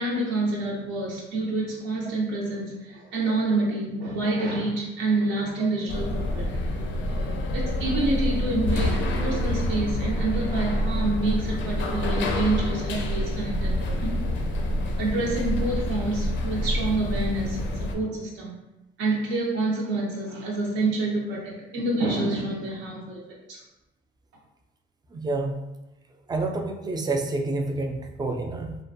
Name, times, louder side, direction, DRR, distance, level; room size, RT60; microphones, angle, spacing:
voice 1, 0.0-6.6 7.5-14.3 15.0-18.5 19.0-23.2 23.5-23.6, right 2 dB, 90° right, -4 dB, 0.6 m, -27 dB
sound 1, 5.9-17.9, left 1 dB, 70° left, 0.4 m, -27 dB
voice 2, 25.1-25.6 26.3-28.8, right 2 dB, 20° right, 3 dB, 0.3 m, -28 dB
2.5 x 2.1 x 2.6 m, 0.97 s
cardioid pair, 90°, 20 cm